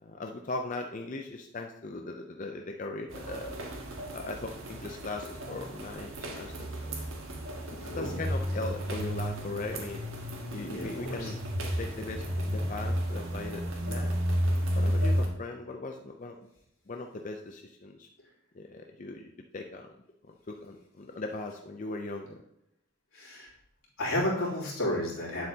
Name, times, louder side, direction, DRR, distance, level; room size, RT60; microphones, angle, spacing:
voice 1, 0.0-3.6 4.1-6.7 7.7-10.1 10.5-11.4 11.8-16.4 16.9-18.1 18.5-19.9 20.3-22.4, left 2 dB, 35° left, 3 dB, 0.5 m, -39 dB
sound 1, 3.1-15.3, equal, 70° right, 1.5 m, -32 dB
voice 2, 7.8-8.2 10.7-11.3 23.1-23.5 24.0-25.5, left 1 dB, 90° left, -6 dB, 3.1 m, -32 dB
9.5 x 7.5 x 2.8 m, 0.79 s
head